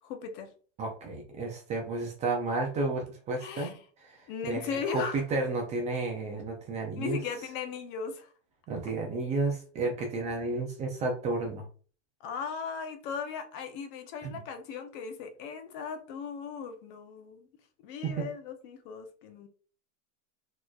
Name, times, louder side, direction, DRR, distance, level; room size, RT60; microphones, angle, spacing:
voice 1, 0.0-0.5 3.4-3.7 4.3-5.2 7.0-8.3 12.2-17.4 17.8-19.5, left 6 dB, 45° left, 0.7 m, -37 dB
voice 2, 0.8-7.2 8.7-11.6 14.2-14.3 18.0-18.3, right 3 dB, 20° right, 0.4 m, -32 dB
4.2 x 3.0 x 2.3 m
supercardioid pair, 140°, 37 cm